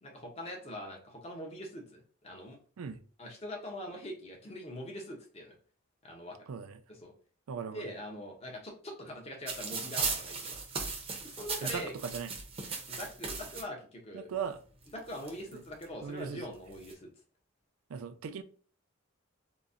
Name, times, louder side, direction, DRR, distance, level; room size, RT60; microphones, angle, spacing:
voice 1, 0.0-2.6 3.2-5.6 6.0-6.4 6.9-7.1 7.6-10.6 11.2-11.9 12.9-14.3 14.9-17.1, equal, 30° left, 0.6 m, -43 dB
voice 2, 7.5-7.8 11.6-11.8 12.1-12.3 14.1-14.6 16.0-16.4 17.9-18.4, right 6 dB, 90° right, 0.4 m, -38 dB
sound 1, 9.5-13.6 14.5-14.6 14.9-15.8 16.6-16.9, right 4 dB, 25° right, 0.5 m, -37 dB
3.8 x 2.1 x 2.4 m
head